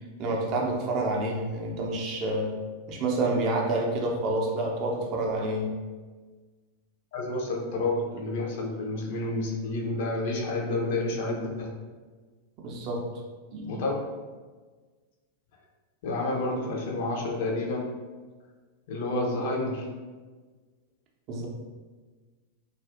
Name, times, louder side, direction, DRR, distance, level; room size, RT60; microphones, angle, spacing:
voice 1, 0.2-2.5 2.9-5.7 12.6-13.0 13.5-13.7 21.3-21.5, right 2 dB, 40° right, 0 dB, 0.5 m, -28 dB
voice 2, 7.1-11.7 13.7-13.9 16.0-17.9 18.9-20.0, left 2 dB, 55° left, 0 dB, 0.4 m, -29 dB
2.6 x 2.3 x 2.4 m, 1.4 s
figure-of-eight pair, 90°, 0 cm